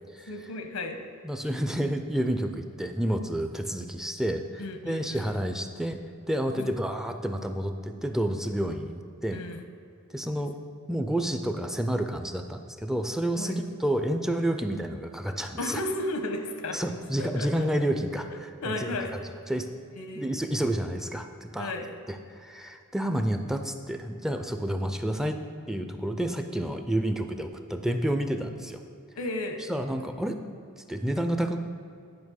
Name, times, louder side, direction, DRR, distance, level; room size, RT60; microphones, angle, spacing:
voice 1, 0.3-1.0 4.6-5.2 6.6-6.7 9.3-9.6 13.3-13.5 15.6-16.8 17.2-17.6 18.6-19.1 20.0-20.3 21.6-21.9 29.2-29.6, left 2 dB, 85° left, 6 dB, 1.0 m, -33 dB
voice 2, 1.2-6.0 6.3-9.4 10.1-10.6 10.9-15.8 16.7-19.2 19.5-19.7 20.1-21.7 22.1-25.4 25.7-28.8 29.6-30.4 30.9-31.6, right 1 dB, ahead, 6 dB, 0.4 m, -30 dB
9.5 x 5.4 x 6.3 m, 2.5 s
head